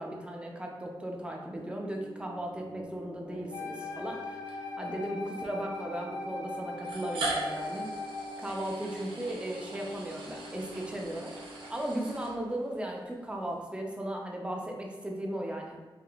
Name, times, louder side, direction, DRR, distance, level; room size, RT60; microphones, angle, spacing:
voice 1, 0.0-7.9 8.4-11.4 11.7-15.8, right 1 dB, 15° right, 0 dB, 0.4 m, -36 dB
sound 1, 1.6-13.0, left 1 dB, 60° right, 1.0 m, -48 dB
sound 2, 3.3-3.5 4.5-4.6 5.7-5.8 6.8-12.8, right 2 dB, 90° right, 0.6 m, -40 dB
Wind instrument woodwind instrument, 3.5-8.6, left 3 dB, 60° left, 0.4 m, -39 dB
3.6 x 2.5 x 2.3 m, 1.2 s
wide cardioid pair, 130°, 8 cm